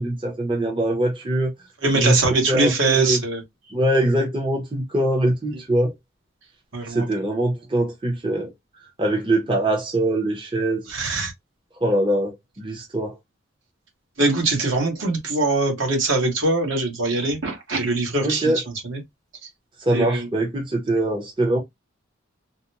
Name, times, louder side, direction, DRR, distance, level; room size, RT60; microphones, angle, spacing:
voice 1, 0.0-1.5 1.9-2.2 2.5-3.2 3.7-5.9 6.9-8.5 9.0-10.8 11.8-13.2 18.2-18.6 19.8-21.6, right 1 dB, 25° right, 0.8 m, -22 dB
voice 2, 1.8-3.4 6.7-7.1 10.9-11.3 14.2-18.5 18.8-19.0 19.9-20.3, right 2 dB, 70° right, 1.5 m, -22 dB
3.9 x 2.2 x 2.9 m
head